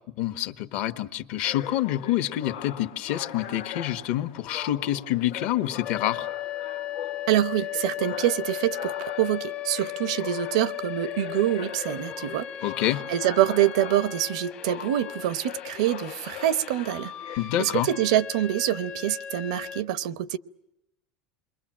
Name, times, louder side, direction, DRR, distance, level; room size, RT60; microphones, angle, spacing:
voice 1, 0.2-6.3 12.6-13.0 17.4-17.9, left 13 dB, 60° left, 1.3 m, -27 dB
sound 1, 1.4-17.4, left 9 dB, 90° left, 1.6 m, -41 dB
sound 2, 5.8-19.8, left 12 dB, 40° left, 1.1 m, -36 dB
voice 2, 7.3-12.7 13.1-17.1 17.6-20.4, right 12 dB, 85° right, 0.9 m, -25 dB
28.0 x 22.5 x 7.6 m
supercardioid pair, 140°, 3 cm